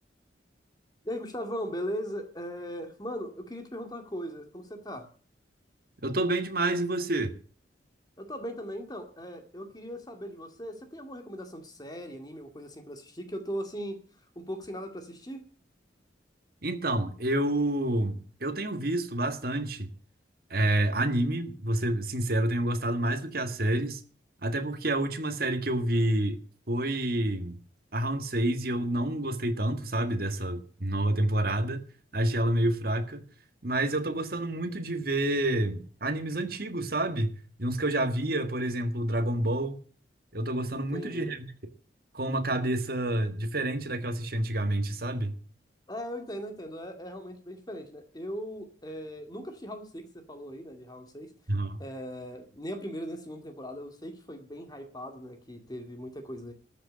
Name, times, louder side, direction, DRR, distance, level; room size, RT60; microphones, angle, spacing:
voice 1, 1.0-5.1 8.2-15.4 40.7-41.4 45.9-51.3 51.8-56.5, equal, 20° left, 2.1 m, -39 dB
voice 2, 6.0-7.3 16.6-19.9 20.5-24.0 24.4-26.4 26.7-27.6 27.9-31.9 32.1-33.2 33.6-39.8 40.3-41.4 42.1-45.4 51.5-51.8, right 1 dB, 55° right, 1.7 m, -28 dB
13.5 x 6.6 x 9.6 m
head